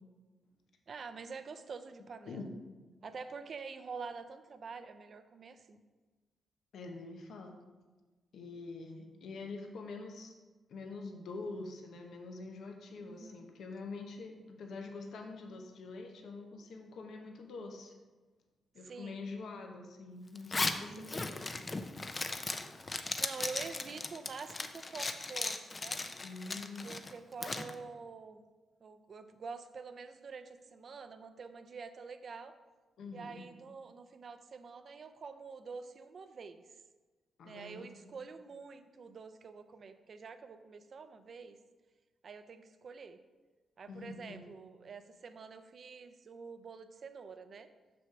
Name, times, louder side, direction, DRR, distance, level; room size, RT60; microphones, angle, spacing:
voice 1, 0.9-2.5 3.0-5.8 13.0-13.5 18.8-19.3 20.8-21.4 23.2-26.0 26.8-28.4 28.8-32.5 33.1-36.7 37.4-41.6 42.2-43.2 43.8-47.7, right 5 dB, 50° right, 9 dB, 0.6 m, -47 dB
voice 2, 6.7-7.6 8.3-10.3 10.7-17.9 18.7-21.5 26.2-26.9 33.0-33.5 37.4-37.9 38.2-38.3 43.9-44.6, left 3 dB, 75° left, 3 dB, 1.0 m, -45 dB
Zipper (clothing), 20.3-27.7, left 3 dB, 30° left, 0.5 m, -37 dB
6.3 x 6.1 x 4.6 m, 1.3 s
cardioid pair, 105°, 0 cm